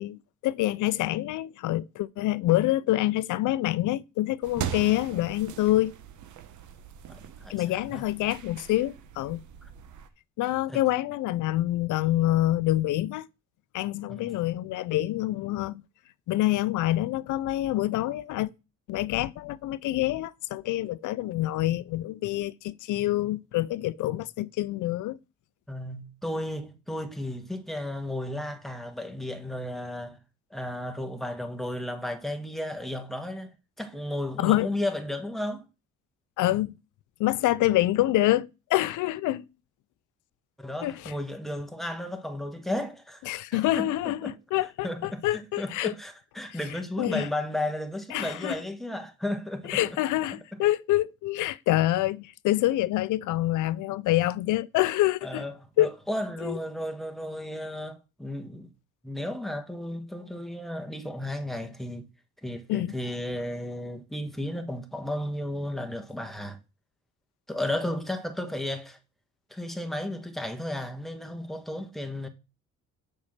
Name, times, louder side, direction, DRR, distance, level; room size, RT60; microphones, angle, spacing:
voice 1, 0.0-5.9 7.5-9.4 10.4-13.3 13.7-15.8 16.3-18.5 18.9-25.2 34.4-34.7 36.4-36.7 37.2-39.4 40.8-41.1 43.3-45.9 47.0-47.3 48.1-48.6 49.7-55.4 55.8-55.9 56.4-56.5 62.7-63.0, left 15 dB, 80° left, 0.5 m, -26 dB
sound 1, 4.4-10.1, right 10 dB, 75° right, 1.1 m, -40 dB
voice 2, 7.1-8.1 10.7-10.8 14.1-14.3 25.7-30.2 30.5-35.7 40.6-44.4 44.8-49.8 50.5-50.6 55.2-58.7 59.0-62.1 62.4-66.6 67.5-69.0 69.5-72.3, left 1 dB, ahead, 1.6 m, -34 dB
7.0 x 5.6 x 6.5 m
cardioid pair, 90°, 30 cm